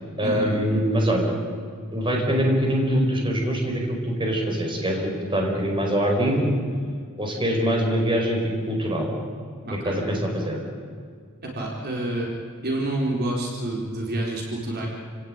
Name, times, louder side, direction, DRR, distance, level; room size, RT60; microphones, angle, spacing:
voice 1, 0.2-1.3 1.9-6.5 7.2-8.4 8.7-9.1 9.8-10.6, equal, 20° right, 0 dB, 4.9 m, -23 dB
voice 2, 9.6-10.0 11.4-12.3 12.6-14.9, right 1 dB, 45° right, -2 dB, 4.2 m, -28 dB
29.0 x 18.0 x 9.0 m, 2.1 s
head